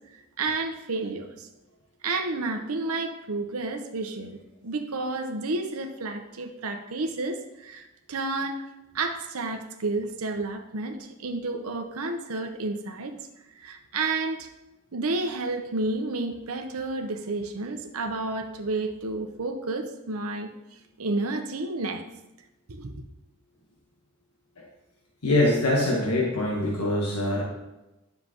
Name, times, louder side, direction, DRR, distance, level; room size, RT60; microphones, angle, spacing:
voice 1, 0.4-1.5 2.0-8.6 8.9-13.1 13.6-14.5 14.9-20.5 21.0-22.0 22.7-23.0, right 3 dB, 75° right, 5 dB, 0.9 m, -31 dB
voice 2, 25.2-27.4, left 1 dB, 85° left, -2 dB, 1.4 m, -24 dB
9.9 x 6.7 x 3.0 m, 0.96 s
head